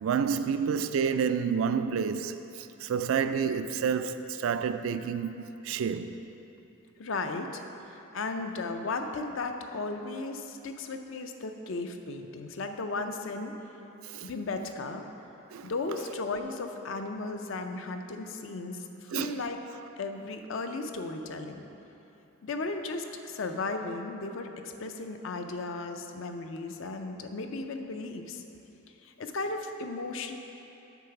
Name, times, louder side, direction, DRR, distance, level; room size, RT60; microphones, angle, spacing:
voice 1, 0.0-6.1 14.0-14.3 15.5-15.7 19.1-19.4, right 6 dB, 70° right, 0.3 m, -29 dB
voice 2, 7.0-7.6 8.1-13.5 14.2-15.1 15.6-19.6 20.0-21.6 22.4-28.4 29.0-30.4, left 3 dB, 60° left, 0.5 m, -35 dB
8.2 x 3.9 x 5.7 m
head